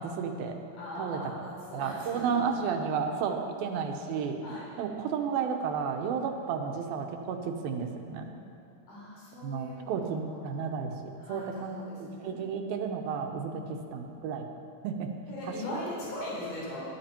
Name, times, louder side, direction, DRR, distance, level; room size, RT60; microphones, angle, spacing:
voice 1, 0.0-0.6 1.0-1.2 1.7-4.4 4.8-8.3 9.4-14.5 14.8-15.1 15.7-15.8, right 6 dB, 75° right, 4 dB, 2.8 m, -32 dB
voice 2, 0.8-2.4 4.4-4.7 8.9-9.9 10.3-10.6 11.2-12.4 13.5-13.7 15.3-16.8, left 1 dB, 70° left, -7 dB, 6.1 m, -40 dB
20.5 x 11.0 x 4.4 m, 2.5 s
omnidirectional pair, 4.4 m